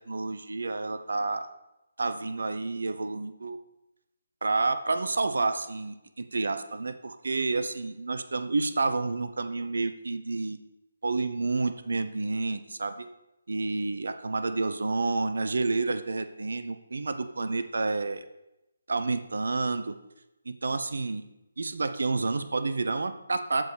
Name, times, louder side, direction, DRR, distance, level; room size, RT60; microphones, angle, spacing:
voice 1, 0.1-1.5 2.0-3.6 4.4-10.6 11.0-13.1 13.5-18.2 18.9-20.0 20.4-21.2 21.6-23.6, right 3 dB, 60° right, 10 dB, 0.8 m, -29 dB
14.0 x 5.3 x 5.0 m, 0.93 s
figure-of-eight pair, 145°, 0 cm